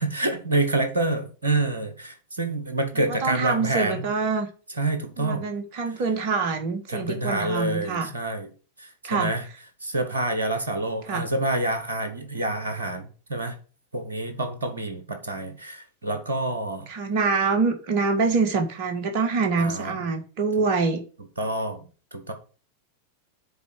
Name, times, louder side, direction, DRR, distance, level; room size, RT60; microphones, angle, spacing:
voice 1, 0.0-4.1 4.8-5.4 6.9-8.5 8.8-9.4 9.8-13.5 13.9-16.9 19.6-20.0 21.4-21.8 22.1-22.3, right 2 dB, 75° right, 7 dB, 1.2 m, -27 dB
voice 2, 2.9-4.5 5.2-8.1 9.0-9.3 11.1-11.2 16.9-21.0, right 4 dB, 45° right, 6 dB, 1.6 m, -25 dB
7.1 x 4.3 x 6.3 m, 0.37 s
figure-of-eight pair, 90°, 0 cm